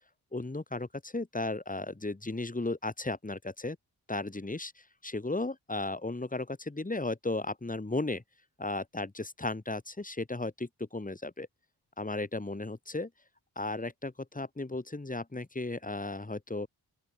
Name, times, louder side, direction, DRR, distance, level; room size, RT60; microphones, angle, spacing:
voice 1, 0.3-3.8 4.1-8.2 8.6-11.5 12.0-13.1 13.6-16.7, left 2 dB, 20° left, 6.5 m, -35 dB
open air
wide cardioid pair, 115°, 39 cm